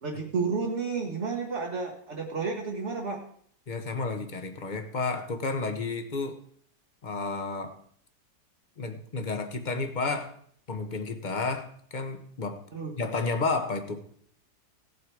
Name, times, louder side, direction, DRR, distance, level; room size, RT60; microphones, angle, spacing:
voice 1, 0.0-3.2 12.7-12.9, right 4 dB, 40° right, 0 dB, 1.6 m, -31 dB
voice 2, 3.7-6.4 7.0-7.7 8.8-10.3 10.7-12.6 13.0-14.0, left 3 dB, 30° left, 7 dB, 1.2 m, -31 dB
16.5 x 7.7 x 4.8 m, 0.62 s
omnidirectional pair, 1.8 m